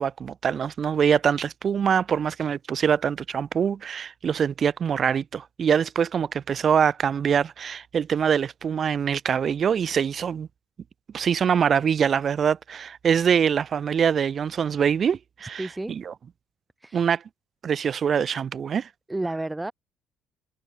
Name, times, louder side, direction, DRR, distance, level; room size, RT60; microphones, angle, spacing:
voice 1, 0.0-10.5 11.1-16.1 16.9-17.2 17.6-18.9, right 7 dB, 50° right, 0.5 m, -24 dB
voice 2, 15.6-16.0 16.8-17.2 19.1-19.7, right 2 dB, 15° right, 1.8 m, -31 dB
hypercardioid pair, 60°, 0 cm